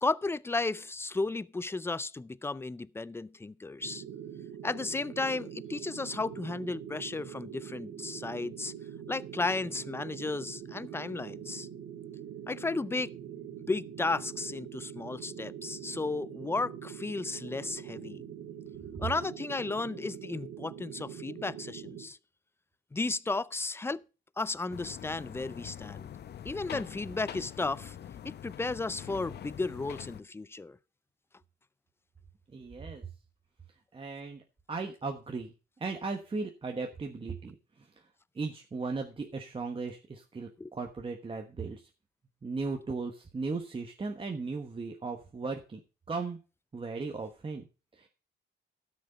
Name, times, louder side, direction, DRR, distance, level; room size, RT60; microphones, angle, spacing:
voice 1, 0.0-4.0 4.6-8.7 9.1-11.7 12.5-13.1 13.7-18.2 19.0-22.2 22.9-24.0 24.4-26.1 26.4-28.0 28.2-30.8 40.6-40.7, left 3 dB, 10° left, 0.5 m, -34 dB
sound 1, 3.8-22.1, right 9 dB, 80° right, 2.3 m, -44 dB
sound 2, 24.7-30.2, left 10 dB, 55° left, 0.8 m, -44 dB
voice 2, 32.5-33.1 33.9-34.4 34.7-37.9 38.3-41.8 42.4-45.8 46.1-46.4 46.7-47.7 48.0-48.1, right 4 dB, 25° right, 1.3 m, -37 dB
12.5 x 6.5 x 5.1 m
cardioid pair, 90°, 20 cm